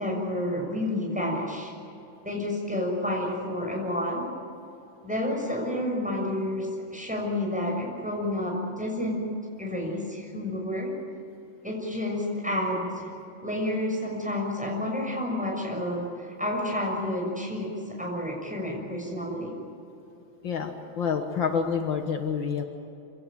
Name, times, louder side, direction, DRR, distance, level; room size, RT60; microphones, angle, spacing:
voice 1, 0.0-1.7 2.2-4.3 5.0-9.2 9.6-10.9 11.6-13.1 13.4-19.5, left 1 dB, 5° right, -1 dB, 6.6 m, -30 dB
voice 2, 21.0-22.6, left 6 dB, 65° left, 5 dB, 2.1 m, -27 dB
26.5 x 17.5 x 9.3 m, 2.8 s
omnidirectional pair, 2.2 m